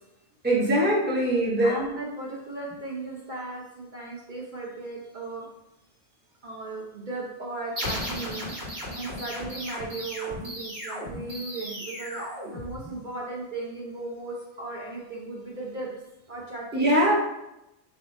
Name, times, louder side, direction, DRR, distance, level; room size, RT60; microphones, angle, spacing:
voice 1, 0.4-1.7 16.7-17.1, right 1 dB, 10° right, -4 dB, 0.9 m, -22 dB
voice 2, 1.6-5.5 6.4-8.5 8.9-15.9 16.3-16.9, right 3 dB, 50° right, -4 dB, 0.9 m, -36 dB
sound 1, 7.8-13.2, equal, 75° right, 1.7 m, -35 dB
3.7 x 2.9 x 4.3 m, 0.88 s
omnidirectional pair, 1.1 m